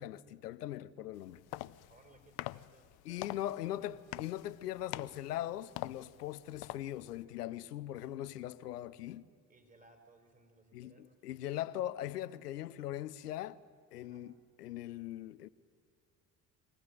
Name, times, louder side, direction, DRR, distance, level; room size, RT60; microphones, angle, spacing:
voice 1, 0.0-1.4 3.0-9.3 10.7-13.6 13.9-15.5, left 13 dB, 85° left, 0.7 m, -40 dB
sound 1, 1.1-7.2, left 17 dB, 55° left, 0.7 m, -46 dB
voice 2, 1.9-3.3 3.7-4.0 9.5-11.3 14.0-14.3, right 2 dB, 15° right, 4.6 m, -63 dB
24.0 x 17.5 x 9.9 m
hypercardioid pair, 55°, 46 cm